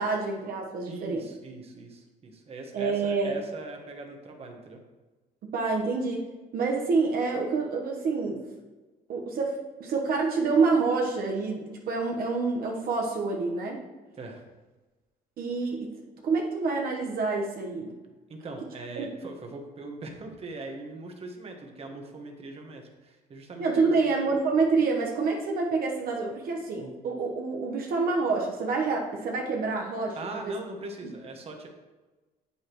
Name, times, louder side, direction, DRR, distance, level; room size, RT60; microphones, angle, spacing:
voice 1, 0.0-1.3 2.7-3.4 5.5-6.2 6.5-8.4 9.1-13.8 15.4-15.9 16.2-18.0 19.0-19.1 23.6-30.2 30.4-30.6, right 4 dB, 60° right, 0 dB, 1.2 m, -27 dB
voice 2, 0.9-4.8 14.2-14.4 18.3-23.7 24.0-24.1 30.1-31.7, right 2 dB, 35° right, 3 dB, 1.4 m, -41 dB
8.4 x 8.2 x 3.1 m, 1.2 s
cardioid pair, 110°, 17 cm